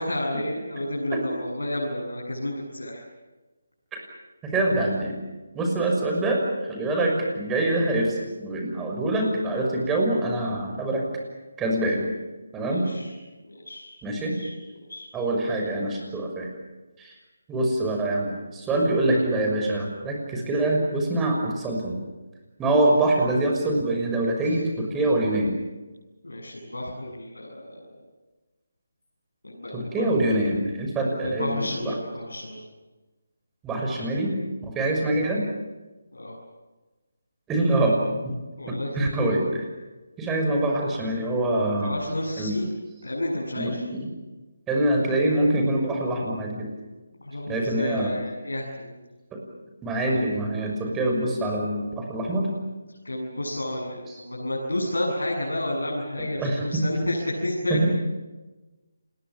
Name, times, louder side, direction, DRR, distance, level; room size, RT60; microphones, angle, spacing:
voice 1, 0.0-3.0 12.6-13.1 13.4-14.5 14.9-15.1 24.4-24.6 26.2-27.9 29.4-30.1 31.2-32.6 34.7-34.9 36.1-36.4 38.6-39.1 41.8-42.7 43.0-43.8 47.2-48.9 53.0-57.9, left 1 dB, 90° left, -2 dB, 7.8 m, -31 dB
voice 2, 4.4-5.2 5.5-6.4 6.7-11.1 11.6-12.1 12.5-12.9 14.0-14.3 15.1-16.5 17.0-17.1 17.5-22.0 22.6-25.5 29.7-32.0 33.6-34.3 34.6-35.4 37.5-38.0 38.2-38.3 38.7-39.6 40.2-41.9 42.4-42.6 43.6-44.1 44.7-46.7 47.5-48.1 49.8-52.5 54.1-54.2 56.4-56.8 57.7-57.9, right 1 dB, 10° right, 1 dB, 6.2 m, -25 dB
29.5 x 21.5 x 7.4 m, 1.2 s
figure-of-eight pair, 155°, 0 cm